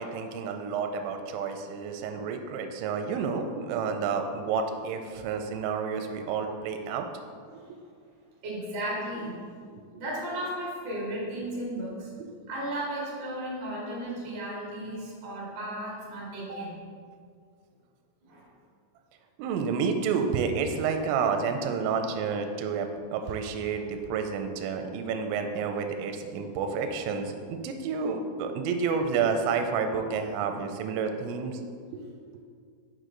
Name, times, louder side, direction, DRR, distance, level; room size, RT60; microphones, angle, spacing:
voice 1, 0.0-7.1 9.7-10.0 12.2-12.4 19.4-31.6 31.9-32.0, right 5 dB, 85° right, 5 dB, 2.8 m, -30 dB
voice 2, 8.4-9.3 10.0-12.1 12.5-16.8 18.2-18.5, right 1 dB, 65° right, -5 dB, 1.1 m, -34 dB
6.6 x 6.5 x 3.8 m, 2.1 s
omnidirectional pair, 5.5 m